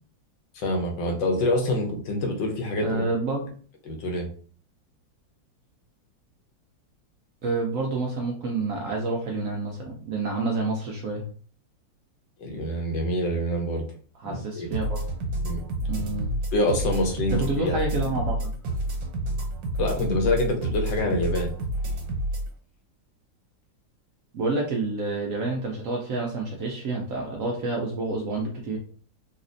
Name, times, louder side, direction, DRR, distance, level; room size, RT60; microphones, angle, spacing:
voice 1, 0.5-3.0 3.9-4.3 12.4-13.8 14.2-14.7 15.4-15.6 16.5-17.8 19.8-21.5, left 1 dB, 90° left, 2 dB, 1.6 m, -26 dB
voice 2, 2.8-3.5 7.4-11.3 14.2-15.0 15.9-16.3 17.3-18.5 24.3-28.8, right 3 dB, 70° right, 0 dB, 0.8 m, -28 dB
sound 1, 14.7-22.5, right 1 dB, 85° right, 1.6 m, -29 dB
4.1 x 2.4 x 2.6 m, 0.43 s
omnidirectional pair, 2.0 m